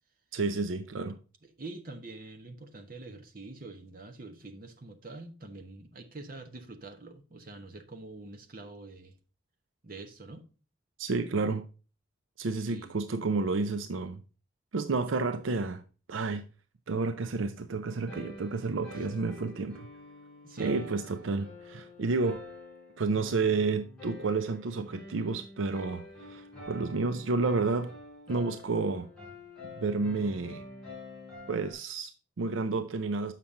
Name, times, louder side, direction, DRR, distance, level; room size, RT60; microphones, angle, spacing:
voice 1, 0.3-1.2 11.0-11.7 12.4-14.2 14.7-15.8 16.1-16.4 16.9-19.9 20.6-22.4 23.0-27.9 28.3-29.1 29.8-30.6 31.5-33.3, right 3 dB, 75° right, 0.5 m, -30 dB
voice 2, 1.4-9.2 9.8-10.5 12.5-13.0 18.9-19.1 20.4-21.0, right 2 dB, 45° right, 1.0 m, -45 dB
sound 1, 18.1-31.7, left 2 dB, 5° left, 4.5 m, -47 dB
7.2 x 5.8 x 3.6 m
head